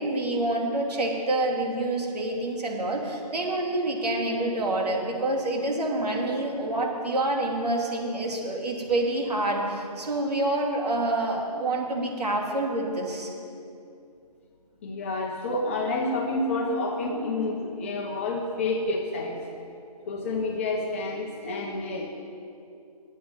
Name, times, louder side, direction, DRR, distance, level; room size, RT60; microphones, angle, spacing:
voice 1, 0.0-13.3, right 2 dB, 75° right, 0 dB, 2.9 m, -27 dB
voice 2, 14.8-19.4 20.1-22.1, left 2 dB, 20° left, 0 dB, 0.9 m, -29 dB
8.8 x 8.5 x 9.5 m, 2.6 s
hypercardioid pair, 165°, 21 cm